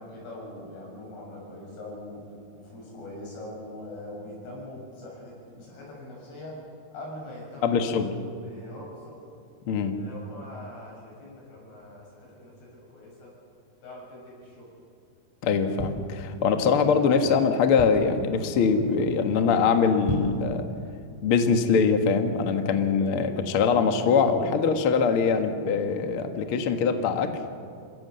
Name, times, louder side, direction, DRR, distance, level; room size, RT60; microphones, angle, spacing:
voice 1, 0.0-2.2 2.5-6.6 6.9-7.8 8.4-9.1 9.8-13.3 13.8-14.7, left 1 dB, 90° left, -3 dB, 9.1 m, -42 dB
voice 2, 7.6-8.1 9.7-9.9 15.4-20.6 21.2-27.3, left 5 dB, 60° left, 6 dB, 1.4 m, -23 dB
sound 1, 15.8-16.7 17.2-17.3 17.5-18.3 18.7-19.0 19.3-19.4 19.9-20.5 20.9-21.0, equal, 5° right, 4.6 m, -34 dB
27.5 x 16.5 x 7.7 m, 2.3 s
omnidirectional pair, 4.7 m